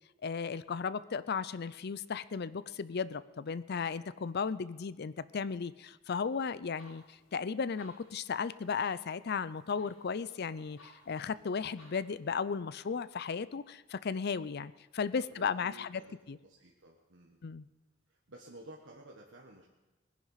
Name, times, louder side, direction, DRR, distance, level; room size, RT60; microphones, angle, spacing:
voice 1, 0.2-16.0 16.3-16.4 17.4-17.7, left 5 dB, 55° left, 17 dB, 0.5 m, -35 dB
sound 1, 6.6-12.2, left 1 dB, 75° left, 5.7 m, -62 dB
voice 2, 15.2-16.1 16.4-17.4 18.1-19.7, right 1 dB, 70° right, -1 dB, 1.5 m, -53 dB
20.0 x 10.0 x 5.7 m, 1.1 s
head